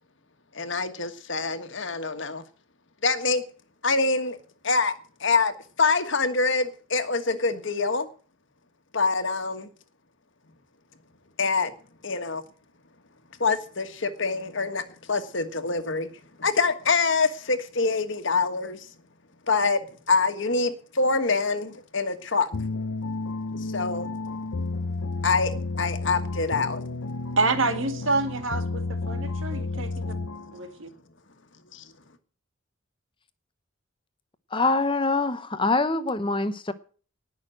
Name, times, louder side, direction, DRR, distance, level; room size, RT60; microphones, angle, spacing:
voice 1, 0.5-2.4 3.0-3.4 3.8-4.4 4.6-4.9 5.2-8.1 8.9-9.7 11.4-11.7 12.0-12.4 13.4-14.8 15.1-16.1 16.4-18.9 19.5-19.8 20.1-22.5 23.7-24.1 25.2-26.8 31.7-31.8, left 4 dB, 60° left, 1.5 m, -25 dB
sound 1, 22.5-30.6, left 3 dB, 80° left, 0.7 m, -31 dB
voice 2, 27.4-29.9 30.5-30.9, right 3 dB, 70° right, 2.1 m, -27 dB
voice 3, 34.5-36.7, left 3 dB, 25° left, 0.8 m, -24 dB
19.0 x 6.4 x 7.7 m
head